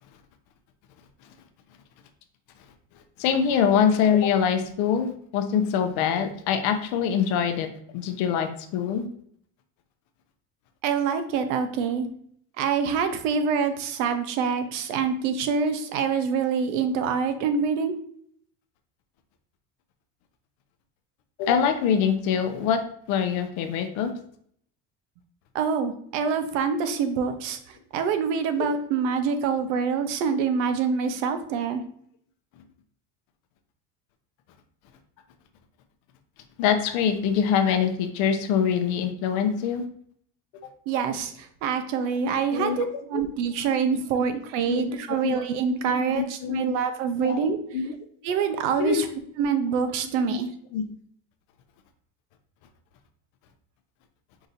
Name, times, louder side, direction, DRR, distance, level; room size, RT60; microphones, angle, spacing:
voice 1, 3.2-7.7 7.9-9.1 21.4-22.8 23.1-24.1 36.6-39.9 42.2-42.8 44.7-44.8 45.2-45.4 45.8-46.6 47.2-47.4 47.7-47.8 48.8-49.0 50.3-50.4 50.7-50.8, left 7 dB, 55° left, 7 dB, 0.6 m, -24 dB
voice 2, 10.8-12.1 12.6-18.0 25.5-31.8 40.9-47.6 48.2-49.1 49.4-50.5, right 6 dB, 80° right, 9 dB, 0.8 m, -26 dB
4.8 x 2.7 x 4.0 m, 0.63 s
cardioid pair, 170°, 36 cm